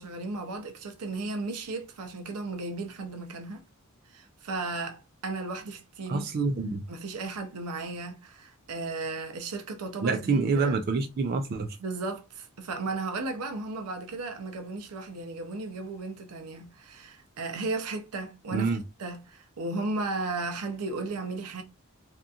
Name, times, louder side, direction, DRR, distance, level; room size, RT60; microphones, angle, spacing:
voice 1, 0.0-3.6 4.1-6.3 6.9-10.8 11.8-21.6, right 3 dB, 85° right, 0.6 m, -35 dB
voice 2, 6.1-6.8 10.0-11.8 18.5-18.8, right 4 dB, 45° right, 0.3 m, -27 dB
2.8 x 2.4 x 2.3 m
head